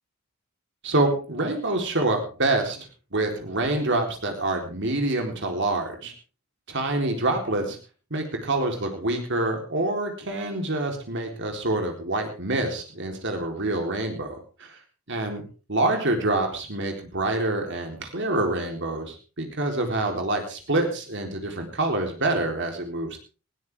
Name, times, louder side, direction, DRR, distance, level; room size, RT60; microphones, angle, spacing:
voice 1, 0.8-2.8 3.1-6.1 6.7-7.8 8.1-14.8 15.1-15.4 15.7-23.2, right 2 dB, 60° right, 3 dB, 4.1 m, -26 dB
19.5 x 16.0 x 3.7 m, 0.35 s
head